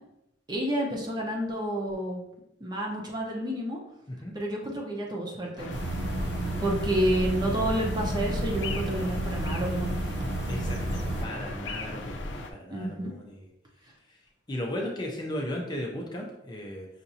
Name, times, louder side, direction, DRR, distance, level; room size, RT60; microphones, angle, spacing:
voice 1, 0.5-2.2 2.6-3.8 4.3-5.7 6.6-9.9 12.7-13.1, right 1 dB, 25° right, -1 dB, 0.8 m, -29 dB
sound 1, 5.6-12.5, left 2 dB, 75° left, 0.5 m, -37 dB
sound 2, 5.7-11.3, right 1 dB, 65° right, 0.4 m, -31 dB
voice 2, 10.5-13.4 14.5-16.9, left 1 dB, 25° left, -1 dB, 0.5 m, -36 dB
5.7 x 2.6 x 2.7 m, 0.83 s
head